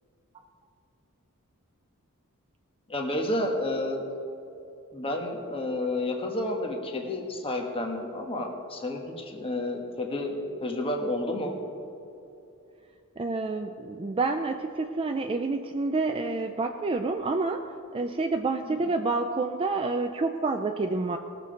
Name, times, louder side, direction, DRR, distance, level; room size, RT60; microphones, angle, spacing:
voice 1, 2.9-4.1 4.9-11.6 18.7-18.8, left 1 dB, 25° left, 2 dB, 1.3 m, -30 dB
voice 2, 13.2-21.2, right 3 dB, 25° right, 5 dB, 0.4 m, -28 dB
19.0 x 6.9 x 5.1 m, 2.8 s
head